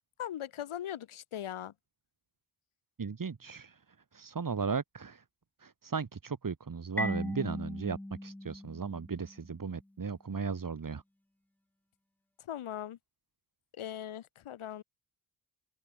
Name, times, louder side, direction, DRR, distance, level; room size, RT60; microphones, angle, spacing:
voice 1, 0.2-1.7 12.4-13.0 13.8-14.8, left 11 dB, 85° left, 3.3 m, -39 dB
voice 2, 3.0-3.8 4.1-5.2 5.6-11.0, right 5 dB, 40° right, 2.3 m, -36 dB
Marimba xylophone, 7.0-9.6, left 1 dB, 5° left, 0.5 m, -38 dB
open air
supercardioid pair, 45°, 48 cm